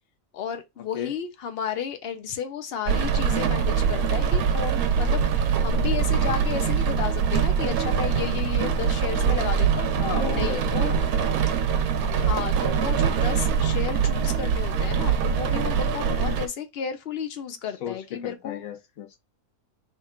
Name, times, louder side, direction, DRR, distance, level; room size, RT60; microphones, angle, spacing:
voice 1, 0.3-10.0 10.3-11.0 12.1-18.6, left 8 dB, 55° left, 0.7 m, -33 dB
Rain, 2.9-16.5, right 6 dB, 85° right, 1.1 m, -23 dB
voice 2, 10.0-11.3 16.1-16.4 17.8-19.2, left 8 dB, 70° left, 1.2 m, -34 dB
3.6 x 2.4 x 4.2 m
omnidirectional pair, 1.5 m